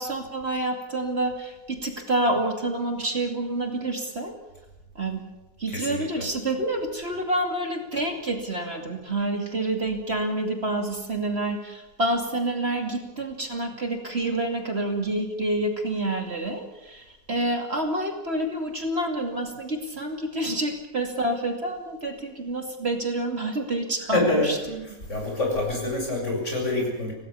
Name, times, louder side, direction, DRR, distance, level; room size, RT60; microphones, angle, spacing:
voice 1, 0.0-4.3 5.0-5.2 5.6-24.8, right 1 dB, 45° right, 3 dB, 2.8 m, -28 dB
voice 2, 5.7-6.3 24.0-27.1, left 2 dB, 55° left, 0 dB, 7.7 m, -27 dB
26.5 x 17.5 x 7.0 m, 1.0 s
omnidirectional pair, 1.5 m